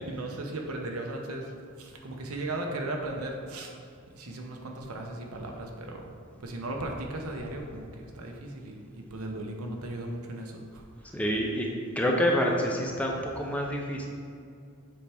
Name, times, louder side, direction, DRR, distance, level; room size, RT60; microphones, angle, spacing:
voice 1, 0.1-1.5 1.8-3.7 4.1-6.1 6.4-11.2, right 2 dB, 90° right, 1 dB, 0.8 m, -37 dB
voice 2, 11.1-11.7 12.0-14.1, equal, 5° left, 0 dB, 0.6 m, -27 dB
7.2 x 4.6 x 3.4 m, 2.3 s
head